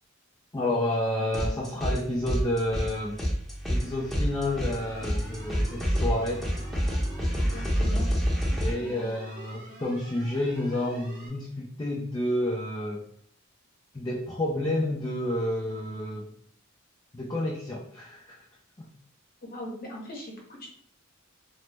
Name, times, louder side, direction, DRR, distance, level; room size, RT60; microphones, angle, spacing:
voice 1, 0.5-3.2 3.7-6.5 8.6-13.1 13.9-16.3 17.1-18.4 18.8-18.9, left 1 dB, 20° left, -3 dB, 0.3 m, -30 dB
sound 1, 1.3-2.0 2.3-8.7, equal, ahead, 0.7 m, -28 dB
sound 2, 4.5-11.3, right 1 dB, 50° right, 0.8 m, -47 dB
voice 2, 7.4-8.1 8.8-9.1 19.4-20.7, equal, 45° left, -1 dB, 0.8 m, -40 dB
2.9 x 2.0 x 3.2 m, 0.66 s
head